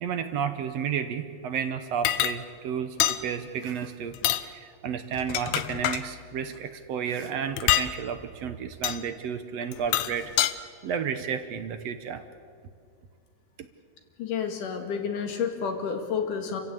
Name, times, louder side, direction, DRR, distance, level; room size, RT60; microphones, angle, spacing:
voice 1, 0.0-10.3 10.8-12.2, right 7 dB, 65° right, 9 dB, 1.9 m, -32 dB
sound 1, 2.0-2.4 3.0-3.2 4.1-4.4 5.1-6.0 7.6-7.9 8.8-9.0 9.7-10.5, left 13 dB, 75° left, 1.9 m, -25 dB
voice 2, 14.2-16.6, left 6 dB, 90° left, 4 dB, 3.7 m, -30 dB
29.0 x 15.5 x 8.4 m, 2.3 s
omnidirectional pair, 3.6 m